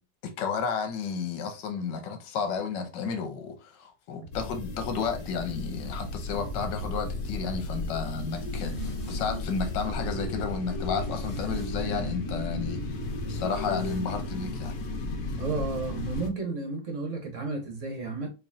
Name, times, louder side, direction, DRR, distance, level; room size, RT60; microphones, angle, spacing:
voice 1, 0.2-12.9 13.3-14.7, left 5 dB, 80° left, 1.4 m, -32 dB
sound 1, 4.3-16.3, left 2 dB, 65° left, 1.2 m, -34 dB
sound 2, 8.3-14.0, left 2 dB, 35° left, 0.5 m, -40 dB
voice 2, 15.4-18.3, right 3 dB, 50° right, 1.1 m, -32 dB
4.5 x 2.8 x 2.6 m
omnidirectional pair, 1.9 m